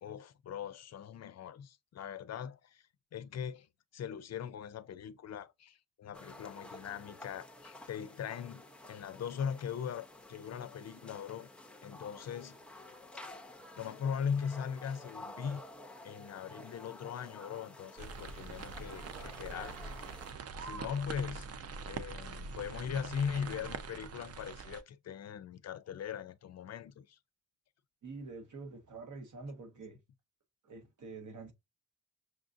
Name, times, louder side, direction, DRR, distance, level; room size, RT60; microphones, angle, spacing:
voice 1, 0.0-2.8 3.1-3.7 3.9-11.5 11.8-12.6 13.8-15.6 16.0-19.8 20.6-21.5 21.9-27.2, left 7 dB, 55° left, 0.4 m, -40 dB
sound 1, 6.1-20.3, left 2 dB, 5° left, 0.6 m, -51 dB
sound 2, 18.0-24.8, right 4 dB, 50° right, 0.5 m, -44 dB
voice 2, 28.0-30.0 30.6-31.5, right 3 dB, 70° right, 1.1 m, -46 dB
6.2 x 2.5 x 2.5 m
wide cardioid pair, 115°, 31 cm